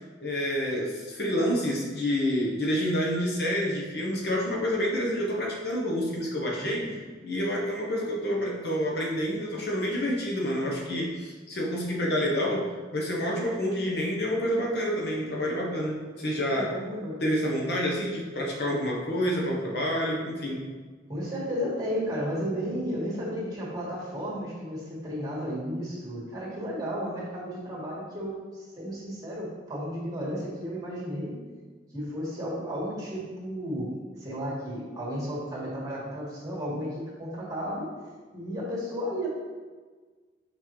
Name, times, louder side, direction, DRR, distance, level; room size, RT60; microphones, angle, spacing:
voice 1, 0.2-16.7 17.2-20.6, equal, 60° left, -2 dB, 1.0 m, -28 dB
voice 2, 6.6-7.0 16.5-17.2 21.1-31.3 31.9-33.9 34.2-37.9 38.3-39.3, equal, 20° right, -6 dB, 1.9 m, -33 dB
5.9 x 5.2 x 3.2 m, 1.4 s
head